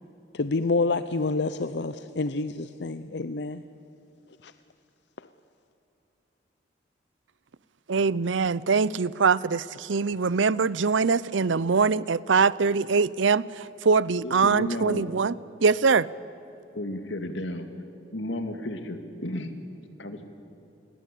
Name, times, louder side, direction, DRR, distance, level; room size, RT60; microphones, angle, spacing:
voice 1, 0.3-3.6 4.4-4.5, left 3 dB, 65° left, 0.6 m, -28 dB
voice 2, 7.9-16.1, right 5 dB, 85° right, 0.6 m, -23 dB
voice 3, 14.2-15.0 16.7-17.7 18.1-19.6 20.0-20.3, left 1 dB, 80° left, 2.3 m, -33 dB
28.5 x 21.5 x 8.5 m
head